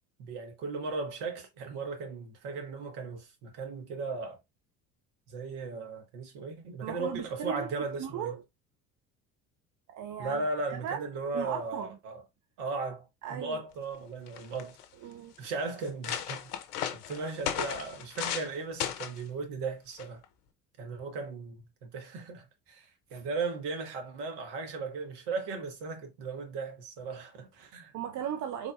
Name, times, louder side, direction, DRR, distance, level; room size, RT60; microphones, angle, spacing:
voice 1, 0.2-4.4 5.3-8.3 10.2-12.2 12.6-14.8 15.4-16.5 16.9-20.2 20.8-27.9, right 3 dB, 60° right, 1.4 m, -37 dB
voice 2, 6.8-7.7 8.0-8.4 9.9-10.5 10.7-11.1 11.3-12.0 13.2-13.6 15.0-15.3 27.9-28.7, right 9 dB, 40° right, 0.6 m, -37 dB
sound 1, 13.9-14.0 14.3-14.8 15.4-15.5 15.8-18.5 18.8-19.2 20.0-20.2, left 10 dB, 75° left, 0.6 m, -35 dB
3.9 x 3.4 x 2.3 m
hypercardioid pair, 60°, 46 cm